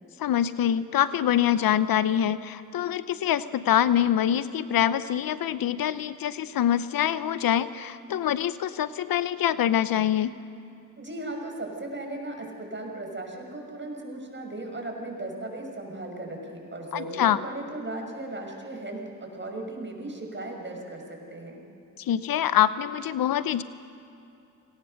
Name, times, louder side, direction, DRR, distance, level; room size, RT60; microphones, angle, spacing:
voice 1, 0.2-10.3 16.9-17.4 22.0-23.6, left 10 dB, 75° left, 14 dB, 0.8 m, -25 dB
voice 2, 11.0-21.0 21.3-21.6, right 2 dB, 30° right, 2 dB, 6.0 m, -36 dB
28.5 x 18.0 x 6.5 m, 2.7 s
cardioid pair, 55°, 35 cm